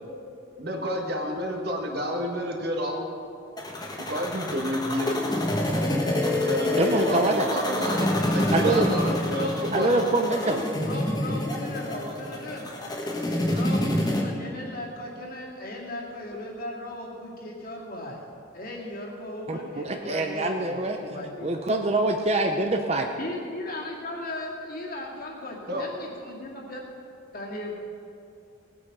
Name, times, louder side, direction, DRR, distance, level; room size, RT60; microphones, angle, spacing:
voice 1, 0.6-3.1 4.1-5.2 6.4-8.1 8.3-9.9 25.7-25.9, equal, 55° right, 1 dB, 1.7 m, -29 dB
sound 1, 3.6-14.2, left 1 dB, 20° left, 1.4 m, -27 dB
voice 2, 6.8-7.5 8.5-8.9 9.7-10.6 19.5-23.1, right 2 dB, 35° right, 4 dB, 0.7 m, -25 dB
voice 3, 7.9-12.7 13.5-18.2 18.5-21.5 23.2-26.8 27.3-27.8, left 1 dB, 50° left, -2 dB, 2.3 m, -37 dB
18.0 x 8.5 x 5.4 m, 2.6 s
head